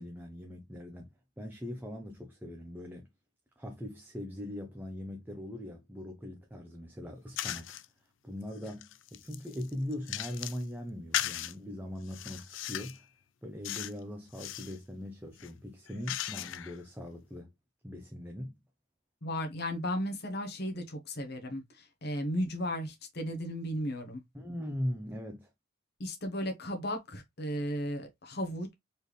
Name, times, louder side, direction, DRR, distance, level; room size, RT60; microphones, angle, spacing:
voice 1, 0.0-3.1 3.6-7.7 8.2-13.1 13.4-17.5 17.8-18.6 24.3-25.5, left 1 dB, 10° right, 0.7 m, -40 dB
sound 1, 7.4-7.9 8.4-10.6 11.1-11.5 12.1-13.0 13.6-14.0 14.3-14.8 15.3-16.8, left 12 dB, 70° left, 0.4 m, -37 dB
voice 2, 19.2-24.2 26.0-28.7, equal, 55° left, 1.2 m, -35 dB
4.3 x 3.5 x 3.2 m
head